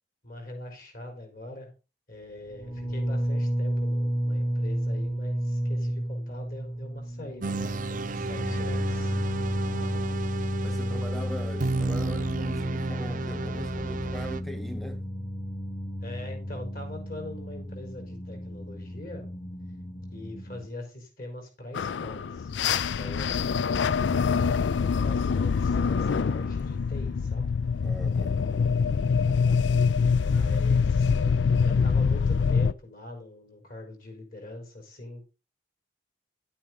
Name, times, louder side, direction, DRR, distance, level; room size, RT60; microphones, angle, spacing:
voice 1, 0.2-1.7 2.1-9.1 9.5-10.2 16.0-19.3 20.1-22.5 22.8-27.4 30.2-35.3, left 1 dB, 50° left, 4.6 m, -43 dB
sound 1, 2.5-20.7, equal, 25° left, 1.3 m, -32 dB
sound 2, 7.4-14.4, right 3 dB, 45° right, 0.6 m, -33 dB
voice 2, 10.6-15.0 27.8-28.4, equal, ahead, 0.5 m, -40 dB
sound 3, 21.7-32.7, left 5 dB, 85° left, 0.4 m, -25 dB
11.0 x 8.6 x 3.9 m
head